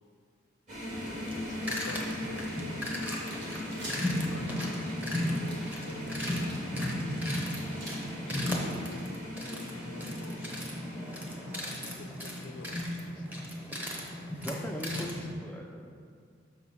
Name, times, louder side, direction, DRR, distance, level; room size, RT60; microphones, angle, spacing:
sound 1, 0.7-12.0, left 1 dB, 40° right, 1.7 m, -39 dB
sound 2, 1.0-15.3, left 1 dB, 10° right, 0.9 m, -36 dB
voice 1, 1.1-2.9 3.8-6.7 7.8-9.1 9.3-10.8 11.3-13.3, left 3 dB, 70° left, 6 dB, 0.5 m, -49 dB
sound 3, 2.4-2.5 3.0-7.9, right 1 dB, 60° right, 1.9 m, -45 dB
voice 2, 14.4-15.9, left 1 dB, 5° left, 1 dB, 0.4 m, -39 dB
6.4 x 4.8 x 5.6 m, 2.1 s
head